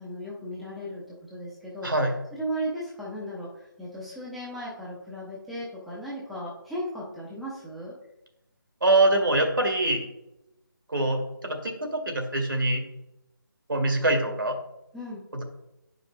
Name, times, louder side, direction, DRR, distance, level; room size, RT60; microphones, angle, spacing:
voice 1, 0.0-1.9 2.3-7.9 14.9-15.2, equal, ahead, -8 dB, 0.5 m, -36 dB
voice 2, 8.8-10.1 10.9-12.8 13.7-14.6 15.3-15.4, right 2 dB, 70° right, 3 dB, 1.8 m, -24 dB
8.9 x 5.1 x 3.2 m, 0.90 s
figure-of-eight pair, 155°, 12 cm